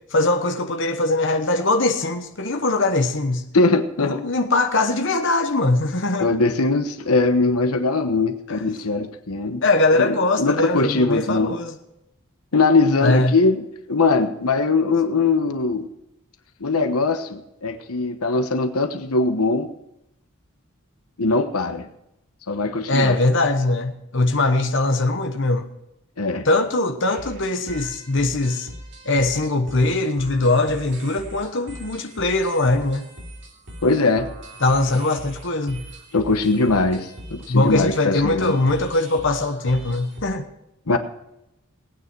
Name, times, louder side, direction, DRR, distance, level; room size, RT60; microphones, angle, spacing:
voice 1, 0.1-3.4 4.0-6.3 8.5-8.6 9.6-11.8 13.0-13.4 22.9-25.7 26.4-28.7 29.0-33.0 34.6-35.8 37.5-40.5, left 2 dB, 55° left, 5 dB, 1.2 m, -21 dB
voice 2, 3.5-4.2 6.2-9.6 10.0-11.5 12.5-13.6 13.9-15.9 16.6-19.7 21.2-21.9 22.5-23.1 26.2-26.5 33.8-34.3 36.1-38.6 40.9-41.0, left 3 dB, 90° left, 8 dB, 1.2 m, -21 dB
sound 1, 27.1-40.3, right 1 dB, 55° right, 3.3 m, -40 dB
18.5 x 9.4 x 4.6 m, 0.85 s
head